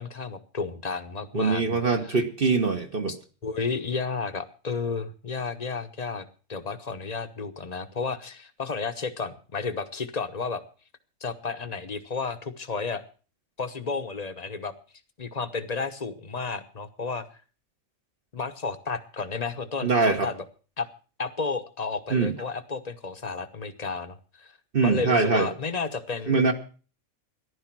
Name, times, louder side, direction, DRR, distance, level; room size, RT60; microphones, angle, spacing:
voice 1, 0.0-2.2 3.1-3.2 3.4-10.6 11.2-13.0 13.6-14.7 15.2-17.3 18.3-20.4 20.8-20.9 21.2-24.5 24.8-26.4, left 4 dB, 30° left, 9 dB, 1.0 m, -32 dB
voice 2, 1.3-3.1 19.8-20.3 22.1-22.3 24.7-25.5 26.3-26.5, right 4 dB, 45° right, 4 dB, 1.4 m, -23 dB
14.5 x 11.0 x 6.0 m, 0.38 s
omnidirectional pair, 1.4 m